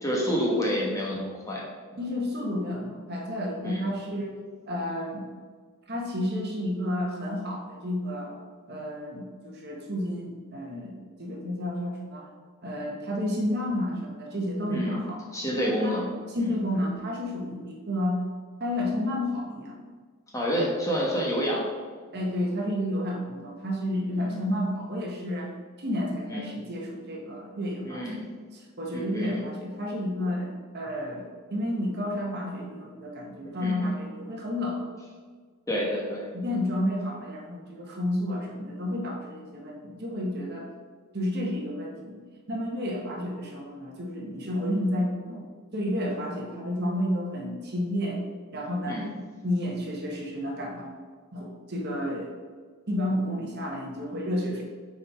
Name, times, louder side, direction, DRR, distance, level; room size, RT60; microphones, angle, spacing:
voice 1, 0.0-1.6 3.6-3.9 14.7-15.0 15.3-16.5 20.3-21.7 24.1-24.4 26.3-26.5 27.8-28.2 28.9-29.4 33.6-33.9 35.7-36.3 48.9-49.1, equal, 15° left, -3 dB, 1.2 m, -29 dB
voice 2, 2.0-4.4 4.7-5.3 5.9-8.4 8.7-12.3 12.6-15.2 15.5-16.0 16.3-18.2 18.6-19.8 22.1-25.5 25.8-28.2 28.5-34.9 36.3-40.7 41.1-42.2 42.5-45.4 45.7-48.2 48.5-50.9 51.3-52.3 52.9-54.6, left 1 dB, 45° right, -1 dB, 1.3 m, -31 dB
6.4 x 4.4 x 4.8 m, 1.5 s
head